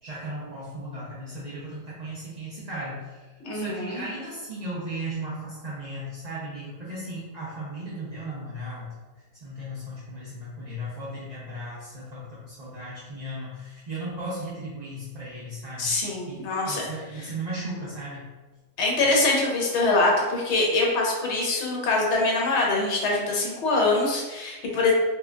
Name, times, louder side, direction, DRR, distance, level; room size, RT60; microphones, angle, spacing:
voice 1, 0.0-8.9 9.4-15.9 16.3-18.3, right 1 dB, 60° right, -8 dB, 0.4 m, -36 dB
voice 2, 3.4-4.0 15.8-16.8 17.2-17.3 18.8-24.9, left 2 dB, 55° left, -2 dB, 0.9 m, -24 dB
3.3 x 2.9 x 2.4 m, 1.2 s
omnidirectional pair, 1.7 m